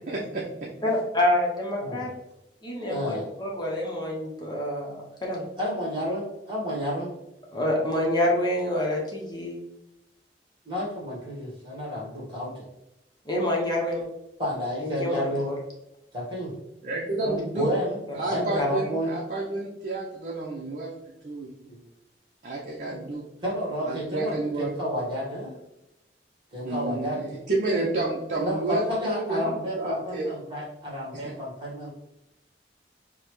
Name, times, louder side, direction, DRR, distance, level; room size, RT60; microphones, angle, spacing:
voice 1, 0.1-0.7 16.8-17.7 18.1-21.5 22.4-23.2 23.9-24.7 26.6-30.3, right 2 dB, 45° right, -4 dB, 0.7 m, -30 dB
voice 2, 0.8-2.1 2.6-5.4 7.5-9.6 13.3-14.0 14.8-15.5 17.2-17.4 18.1-18.2 18.6-18.7 22.9-23.0, left 1 dB, 25° left, -2 dB, 0.9 m, -27 dB
voice 3, 2.9-3.2 5.6-7.1 10.6-12.6 14.4-15.4 16.1-16.5 17.5-18.0 18.3-19.1 21.6-21.8 23.4-25.5 26.5-27.2 28.4-31.9, equal, 30° right, -4 dB, 1.5 m, -30 dB
5.4 x 2.2 x 3.1 m, 0.90 s
head